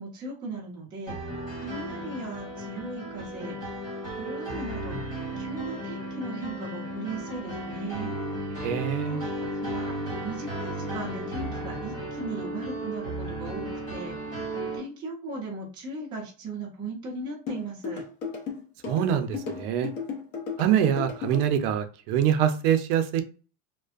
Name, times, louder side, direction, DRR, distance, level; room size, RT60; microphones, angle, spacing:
voice 1, 0.0-3.6 4.2-8.1 8.6-14.4 14.7-18.0, right 2 dB, 10° right, -5 dB, 0.4 m, -38 dB
sound 1, 1.1-14.8, right 1 dB, 10° left, 1.1 m, -34 dB
voice 2, 8.6-9.2 18.9-19.9 20.6-23.2, right 10 dB, 75° right, 8 dB, 0.5 m, -24 dB
sound 2, 17.5-21.4, left 5 dB, 45° left, 0.7 m, -34 dB
2.6 x 2.1 x 2.3 m, 0.36 s
cardioid pair, 180°, 45 cm